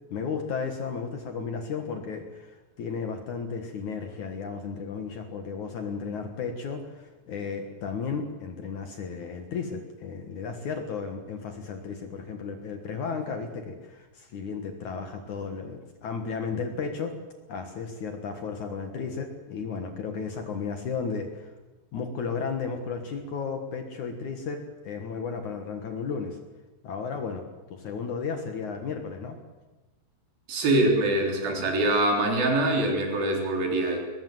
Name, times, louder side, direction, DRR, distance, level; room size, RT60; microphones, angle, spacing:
voice 1, 0.1-17.2 17.5-21.5 21.9-26.4 26.8-27.4 27.7-29.4, left 5 dB, 60° left, 6 dB, 2.2 m, -34 dB
voice 2, 30.5-34.0, right 1 dB, 55° right, 2 dB, 5.4 m, -24 dB
22.0 x 20.0 x 7.8 m, 1.2 s
omnidirectional pair, 5.3 m